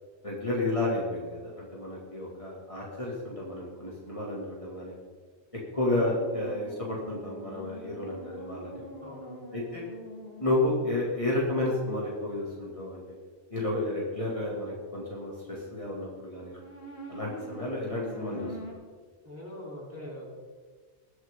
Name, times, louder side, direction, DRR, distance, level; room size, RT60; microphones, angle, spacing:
voice 1, 0.2-4.9 5.7-8.8 9.5-9.8 10.4-13.0 13.5-16.6 17.1-18.7, left 1 dB, 30° left, -5 dB, 2.5 m, -31 dB
sound 1, 5.7-11.2 16.5-18.7, left 1 dB, 65° left, 2.3 m, -44 dB
voice 2, 9.0-9.4 19.2-20.3, left 1 dB, 10° right, -5 dB, 3.5 m, -42 dB
21.0 x 7.8 x 3.8 m, 1.5 s
omnidirectional pair, 1.1 m